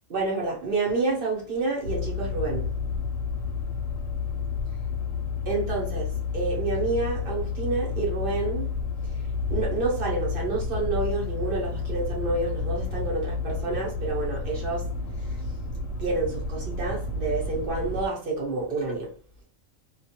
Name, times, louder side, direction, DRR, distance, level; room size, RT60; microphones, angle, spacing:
voice 1, 0.1-2.7 5.4-8.7 9.0-9.2 9.5-14.9 15.2-15.4 16.0-19.1, right 3 dB, 45° right, 0.9 m, -29 dB
sound 1, 1.8-18.1, left 4 dB, 70° left, 1.0 m, -31 dB
2.4 x 2.3 x 2.7 m
omnidirectional pair, 1.4 m